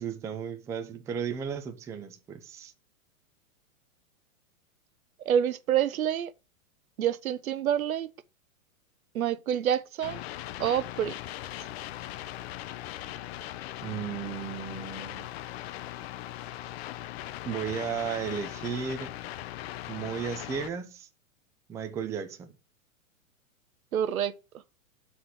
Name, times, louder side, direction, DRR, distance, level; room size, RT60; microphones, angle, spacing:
voice 1, 0.0-2.7 13.8-15.3 17.5-19.1 19.9-21.1 21.7-22.6, right 7 dB, 10° right, 0.3 m, -34 dB
voice 2, 5.3-6.3 7.0-8.1 9.1-10.2 10.6-11.1 23.9-24.3, right 9 dB, 90° right, 0.7 m, -27 dB
sound 1, 10.0-20.7, left 14 dB, 50° left, 0.5 m, -39 dB
6.3 x 4.3 x 5.7 m
hypercardioid pair, 125°, 41 cm